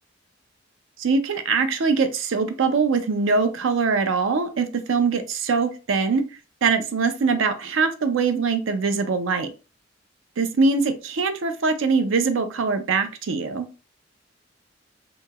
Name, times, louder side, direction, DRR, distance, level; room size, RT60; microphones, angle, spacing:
voice 1, 1.0-6.2 6.6-9.5 10.4-13.7, right 4 dB, 85° right, 9 dB, 0.5 m, -22 dB
2.9 x 2.7 x 2.3 m, 0.32 s
head